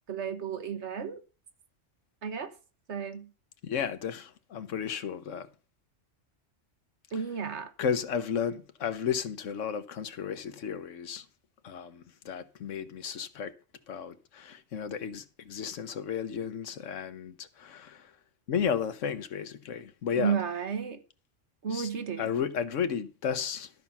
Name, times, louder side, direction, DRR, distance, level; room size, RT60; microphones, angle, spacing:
voice 1, 0.1-1.2 2.2-2.5 2.9-3.3 7.1-7.7 20.2-21.0 21.6-22.3, right 7 dB, 65° right, 1.5 m, -32 dB
voice 2, 3.6-5.5 7.8-11.2 11.6-13.5 13.9-18.1 18.5-20.4 21.7-21.9 22.2-23.7, left 7 dB, 90° left, 1.3 m, -33 dB
12.5 x 5.5 x 5.9 m
omnidirectional pair, 1.3 m